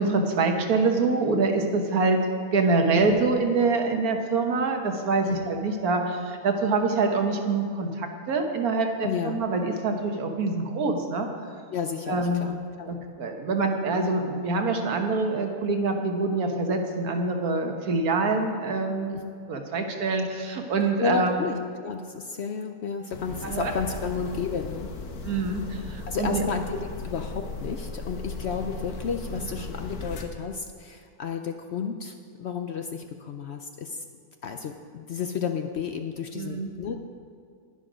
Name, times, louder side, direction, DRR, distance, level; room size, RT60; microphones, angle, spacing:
voice 1, 0.0-2.2 2.5-11.3 12.1-12.4 12.9-19.1 19.5-21.4 23.4-23.7 25.2-26.4 36.3-36.7, right 3 dB, 75° right, 4 dB, 1.6 m, -25 dB
voice 2, 9.0-9.4 11.7-12.9 19.1-19.2 21.0-24.9 26.1-34.0 34.4-37.0, left 6 dB, 60° left, 6 dB, 0.7 m, -32 dB
sound 1, 23.1-30.3, left 4 dB, 80° left, 1.5 m, -37 dB
11.0 x 11.0 x 5.0 m, 2.3 s
omnidirectional pair, 1.6 m